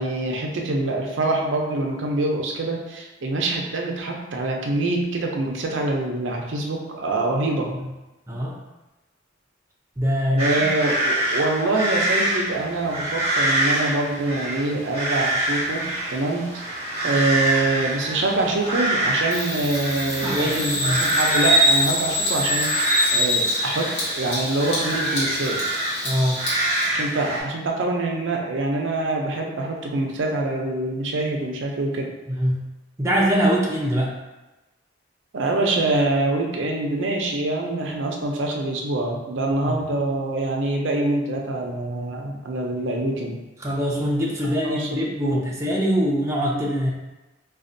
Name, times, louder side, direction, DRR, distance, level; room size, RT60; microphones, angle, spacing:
voice 1, 0.0-7.7 10.3-16.6 17.0-22.8 23.1-25.6 26.9-32.1 35.3-43.4 44.6-44.9 45.2-45.4, right 2 dB, 70° right, 1 dB, 0.5 m, -25 dB
voice 2, 8.3-8.6 10.0-10.7 20.2-21.0 26.0-26.4 32.3-32.6 33.0-34.1 39.7-39.8 43.6-46.9, equal, 15° right, -4 dB, 0.5 m, -23 dB
sound 1, 10.4-27.4, right 1 dB, 30° left, 1.4 m, -26 dB
Bird vocalization bird call bird song, 19.3-26.9, equal, 70° left, 1.1 m, -24 dB
4.2 x 2.3 x 2.6 m, 1.0 s
head